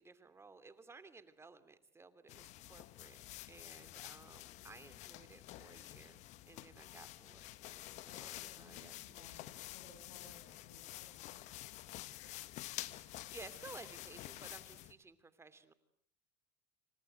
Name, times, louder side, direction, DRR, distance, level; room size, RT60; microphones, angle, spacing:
voice 1, 0.0-3.2 3.5-9.6 12.9-15.7, right 4 dB, 20° right, 13 dB, 2.7 m, -57 dB
sound 1, 2.3-14.9, left 16 dB, 55° left, 1.4 m, -49 dB
voice 2, 8.1-12.1, left 4 dB, 90° left, 2 dB, 6.8 m, -62 dB
28.0 x 26.0 x 8.0 m, 0.65 s
hypercardioid pair, 95°, 14 cm